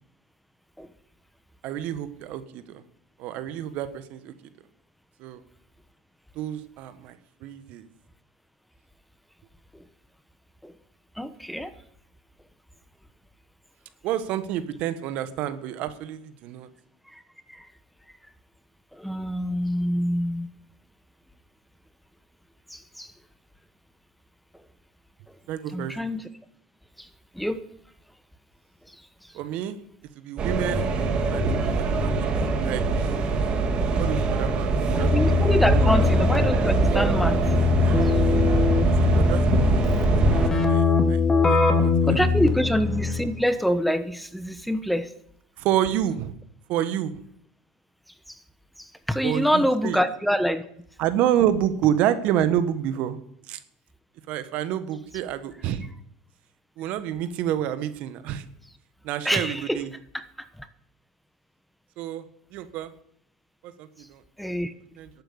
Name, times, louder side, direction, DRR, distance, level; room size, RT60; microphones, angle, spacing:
voice 1, 1.6-2.8 3.2-4.3 5.2-5.4 6.3-7.8 14.0-16.7 25.5-25.9 29.3-29.8 30.2-30.9 31.3-32.1 32.6-33.1 34.0-35.1 39.2-39.4 39.7-39.8 40.3-41.2 41.5-42.1 45.6-46.3 46.7-47.1 49.2-50.0 51.0-53.2 53.5-53.6 54.3-55.8 56.8-58.4 59.0-59.9 62.0-62.2 62.5-62.9 63.6-64.2 65.0-65.1, right 11 dB, 60° right, 11 dB, 1.3 m, -28 dB
voice 2, 11.2-11.7 17.1-17.2 17.5-17.7 18.9-20.5 22.7-23.1 25.7-26.2 27.0-27.1 27.3-27.6 34.9-37.4 38.0-38.1 42.0-45.1 48.8-50.6 59.2-59.8 60.1-60.7 64.4-64.7, equal, ahead, 11 dB, 1.1 m, -26 dB
sound 1, 30.4-40.5, right 3 dB, 40° right, 2.4 m, -23 dB
Keyboard (musical), 35.0-43.4, left 4 dB, 20° left, 2.4 m, -22 dB
12.0 x 9.0 x 8.3 m, 0.70 s
hypercardioid pair, 90°, 3 cm